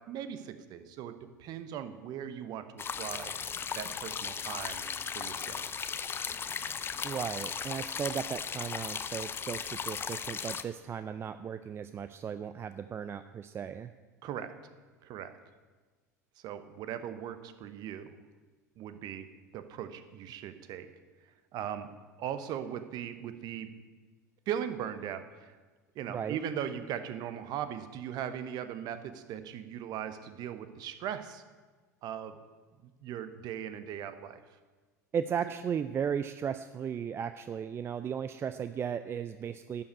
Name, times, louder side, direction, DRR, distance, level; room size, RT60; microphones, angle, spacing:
voice 1, 0.1-3.3 3.8-4.8 5.1-5.6 14.2-14.5 15.0-15.3 16.4-18.1 18.8-19.3 19.5-20.9 21.5-21.9 22.2-23.7 24.5-25.6 25.9-31.4 32.0-32.4 32.8-34.4, right 9 dB, 45° right, 11 dB, 0.9 m, -39 dB
sound 1, 2.8-10.6, left 6 dB, 25° left, 0.6 m, -37 dB
voice 2, 7.0-13.9 26.1-26.4 35.1-39.8, right 7 dB, 25° right, 12 dB, 0.4 m, -36 dB
11.5 x 5.4 x 8.3 m, 1.4 s
hypercardioid pair, 80°, 9 cm